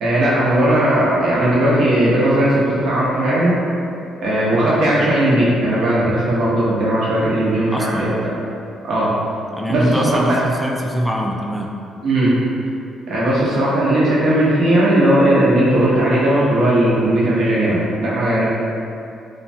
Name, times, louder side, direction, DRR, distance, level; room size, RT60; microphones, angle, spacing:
voice 1, 0.0-3.5 4.2-8.1 8.8-9.1 9.7-10.4 12.0-12.4 13.1-18.5, right 1 dB, 65° right, -7 dB, 0.7 m, -17 dB
voice 2, 7.7-8.1 9.5-11.7, equal, ahead, -1 dB, 0.3 m, -22 dB
3.1 x 2.1 x 2.6 m, 2.5 s
supercardioid pair, 70°, 0 cm